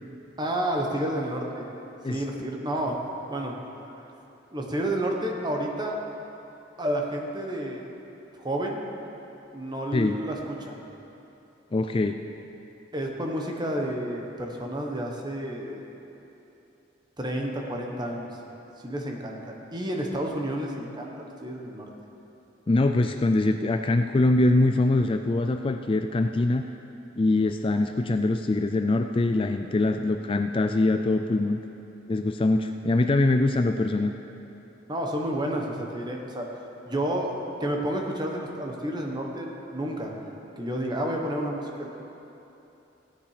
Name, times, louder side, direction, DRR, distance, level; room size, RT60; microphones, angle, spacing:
voice 1, 0.4-1.6 2.1-2.9 3.3-3.5 4.5-6.0 6.8-7.9 8.4-8.8 9.5-10.7 12.9-15.8 17.2-18.3 18.8-21.9 34.9-36.5 36.8-37.3 37.6-40.1 40.6-41.9, right 1 dB, 25° right, 0 dB, 1.4 m, -30 dB
voice 2, 11.7-12.2 22.7-26.7 27.2-31.6 32.1-34.1, left 2 dB, 30° left, 6 dB, 0.4 m, -23 dB
16.0 x 10.0 x 5.0 m, 3.0 s
head